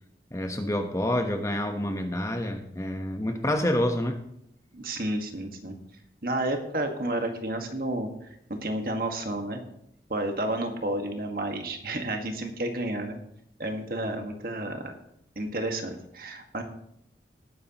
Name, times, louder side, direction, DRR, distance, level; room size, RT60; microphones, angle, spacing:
voice 1, 0.3-4.2, left 1 dB, 15° left, 5 dB, 1.0 m, -28 dB
voice 2, 4.7-5.8 6.2-8.1 8.5-9.6 10.1-13.2 13.6-14.9 15.3-16.6, right 1 dB, 55° right, 4 dB, 1.6 m, -31 dB
19.0 x 9.4 x 3.0 m, 0.74 s
head